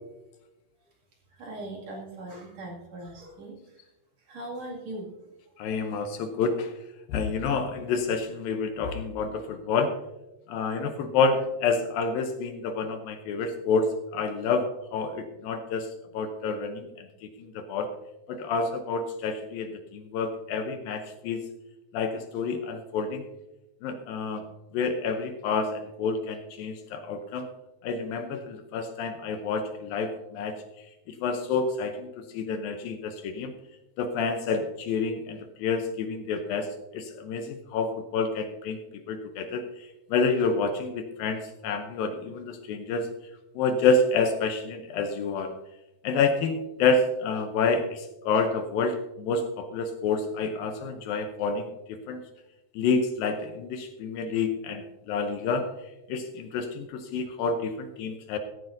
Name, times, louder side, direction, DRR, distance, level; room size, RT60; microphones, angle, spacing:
voice 1, 1.4-3.5 4.3-5.3, right 1 dB, 50° right, -2 dB, 3.1 m, -39 dB
voice 2, 5.6-6.7 7.1-10.0 10.5-17.9 18.3-21.4 21.9-23.2 23.8-24.5 24.7-27.5 27.8-30.6 31.2-33.5 34.0-38.8 39.1-39.7 40.1-43.1 43.6-45.6 46.0-52.2 52.7-55.7 56.1-58.4, left 4 dB, 75° left, 7 dB, 2.4 m, -28 dB
15.0 x 14.0 x 2.6 m, 0.98 s
omnidirectional pair, 4.5 m